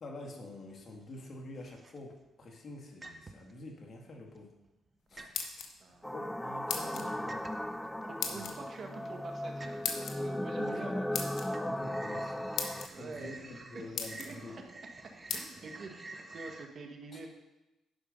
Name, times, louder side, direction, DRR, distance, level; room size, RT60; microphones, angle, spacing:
voice 1, 0.0-2.1 2.4-4.5 5.1-5.3 6.1-7.4 8.3-8.7 10.5-11.0 11.5-12.5 13.0-14.6 17.1-17.2, left 2 dB, 45° left, 1 dB, 2.0 m, -47 dB
sound 1, 0.8-1.3 1.6-2.3 3.0-3.6 4.2-4.9 5.2-5.6 7.3-7.8 8.4-8.5 8.9-9.0 9.6-10.2 10.6-11.2 11.5-16.7, right 2 dB, 30° right, 0.8 m, -49 dB
sound 2, 5.1-6.0 6.7-7.1 8.2-8.5 9.8-10.2 11.1-11.5 12.2-12.3 12.6-12.9 13.5-13.6 14.0-14.3 15.3-15.4, left 6 dB, 70° left, 1.2 m, -36 dB
voice 2, 5.1-6.1 8.0-11.2 12.1-12.2 12.9-13.4 13.7-14.3 15.3-17.3, right 3 dB, 50° right, 3 dB, 1.6 m, -47 dB
sound 3, 6.0-12.9, left 1 dB, 5° left, 0.3 m, -37 dB
11.0 x 5.1 x 5.3 m, 1.0 s
cardioid pair, 90°, 0 cm